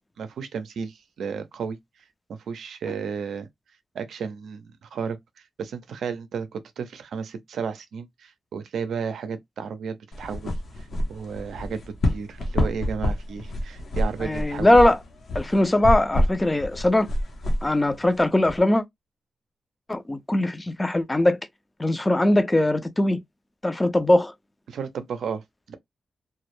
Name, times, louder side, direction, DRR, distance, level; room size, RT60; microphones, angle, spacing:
voice 1, 0.2-1.8 2.3-3.5 3.9-5.2 5.6-10.6 11.1-14.8 24.7-25.8, right 6 dB, 85° right, 0.5 m, -33 dB
sound 1, 10.1-18.6, left 1 dB, 70° left, 0.8 m, -28 dB
voice 2, 14.2-15.0 15.3-17.1 17.6-18.8 19.9-21.4 21.8-23.2 23.6-24.3, left 1 dB, 20° left, 0.4 m, -20 dB
2.2 x 2.0 x 3.0 m
cardioid pair, 80°, 0 cm